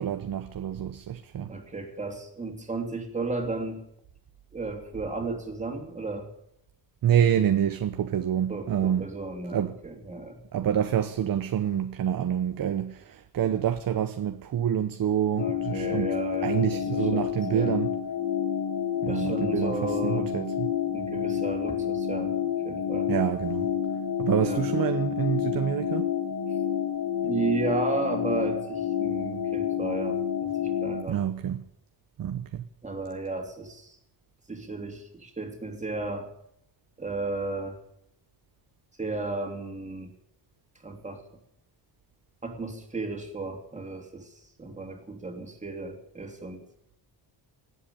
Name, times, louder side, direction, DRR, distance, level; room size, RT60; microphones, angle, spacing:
voice 1, 0.0-1.5 7.0-9.1 9.5-9.7 10.5-16.1 16.4-17.9 19.0-20.7 23.1-23.7 24.2-26.1 31.1-31.6 32.2-32.6, right 9 dB, 50° right, 0.9 m, -27 dB
voice 2, 1.5-3.8 4.5-6.3 8.5-10.4 15.4-17.7 19.1-20.3 20.9-22.3 22.6-23.1 24.4-24.6 27.2-31.2 32.8-34.0 34.5-36.3 37.0-37.8 39.0-40.1 40.8-41.2 42.4-44.3 44.6-46.6, right 3 dB, 15° right, 2.9 m, -34 dB
sound 1, 15.4-31.0, left 9 dB, 75° left, 2.8 m, -29 dB
17.5 x 8.3 x 8.5 m
cardioid pair, 135°, 45 cm